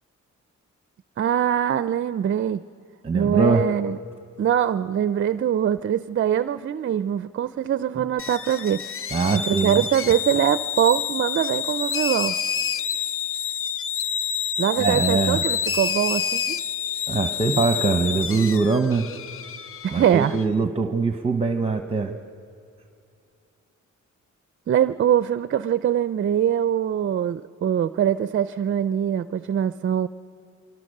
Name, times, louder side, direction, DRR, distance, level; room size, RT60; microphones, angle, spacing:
voice 1, 1.2-2.6 3.1-4.0 4.4-8.9 9.3-12.3 14.6-16.6 19.8-20.4 24.7-30.1, right 9 dB, 40° right, 13 dB, 0.4 m, -23 dB
voice 2, 3.0-3.7 9.1-9.8 14.8-15.4 17.1-19.1 19.9-22.2, right 4 dB, 20° right, 7 dB, 0.9 m, -22 dB
sound 1, 8.2-20.4, left 8 dB, 45° left, 0.5 m, -28 dB
25.5 x 24.0 x 6.6 m, 2.6 s
wide cardioid pair, 130°, 31 cm